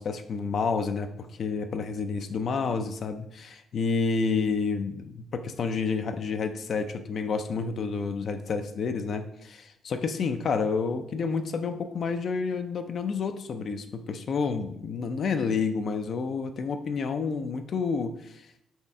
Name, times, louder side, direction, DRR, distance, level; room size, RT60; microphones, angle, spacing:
voice 1, 0.0-18.5, left 5 dB, 55° left, 8 dB, 0.3 m, -29 dB
4.3 x 3.1 x 3.5 m, 0.75 s
cardioid pair, 90°, 0 cm